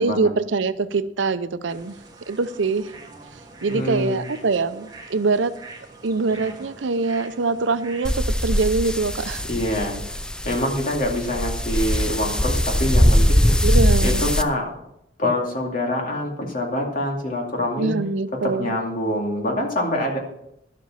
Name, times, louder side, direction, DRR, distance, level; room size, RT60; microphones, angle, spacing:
voice 1, 0.0-1.9 2.3-2.9 3.6-5.5 6.0-9.5 13.6-14.2 17.8-18.7, right 3 dB, 85° right, 13 dB, 0.6 m, -23 dB
sound 1, 1.7-8.2, right 2 dB, 20° right, 1.6 m, -44 dB
voice 2, 3.7-4.3 9.4-13.6 14.0-14.8 15.2-18.0 18.4-20.2, left 1 dB, 50° left, 0 dB, 2.3 m, -25 dB
sound 2, 8.0-14.4, equal, 5° left, 0.4 m, -21 dB
11.5 x 7.5 x 5.6 m, 0.82 s
head